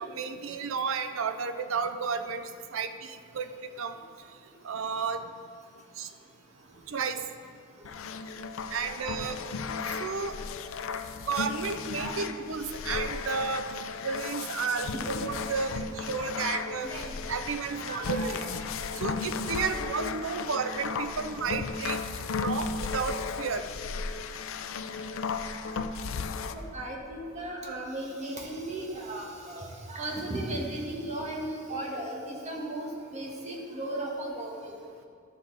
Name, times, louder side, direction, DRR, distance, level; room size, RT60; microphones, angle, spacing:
voice 1, 0.2-3.5 3.8-3.9 4.6-5.2 6.0-6.1 6.9-7.3 8.7-9.3 10.0-10.3 11.3-13.7 14.0-16.9 17.3-18.4 19.0-22.0 22.4-23.6, right 5 dB, 75° right, 10 dB, 0.5 m, -32 dB
sound 1, 7.8-26.5, left 5 dB, 75° left, 0.5 m, -35 dB
voice 2, 8.8-9.4 11.9-12.2 14.9-15.0 16.8-17.0 17.7-18.5 21.4-21.5 25.6-25.8 26.5-34.9, right 1 dB, 35° right, -2 dB, 1.5 m, -36 dB
12.0 x 7.3 x 3.9 m, 2.2 s
head